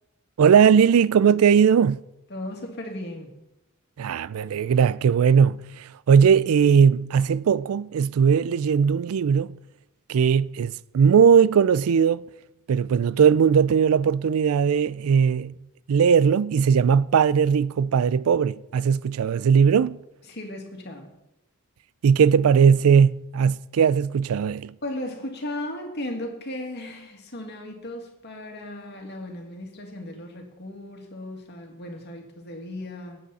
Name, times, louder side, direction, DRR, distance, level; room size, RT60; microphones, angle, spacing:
voice 1, 0.4-2.0 4.0-9.6 10.1-12.2 12.7-15.5 15.9-20.0 22.0-24.7, right 7 dB, 80° right, 0.4 m, -19 dB
voice 2, 2.3-3.3 20.3-21.1 24.8-33.2, left 1 dB, 50° left, 2.3 m, -36 dB
18.0 x 7.8 x 4.2 m
head